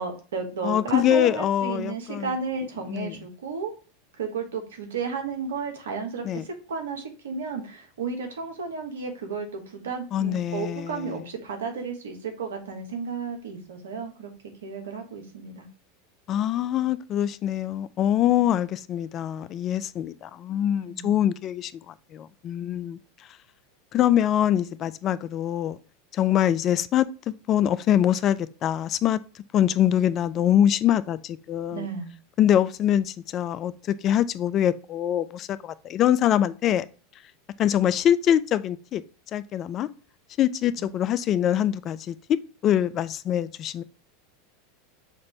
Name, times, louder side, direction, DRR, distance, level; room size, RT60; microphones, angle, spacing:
voice 1, 0.0-3.7 4.2-14.3 14.6-15.7 20.8-21.2 31.7-32.1 40.8-40.9, right 5 dB, 85° right, 1.2 m, -33 dB
voice 2, 0.6-2.3 2.9-3.2 6.2-6.4 10.1-11.2 16.3-23.0 23.9-25.8 26.1-29.2 29.5-31.9 32.4-36.9 37.6-39.0 39.3-39.9 40.4-43.8, left 10 dB, 40° left, 0.3 m, -24 dB
5.9 x 2.6 x 3.1 m
hypercardioid pair, 100°, 0 cm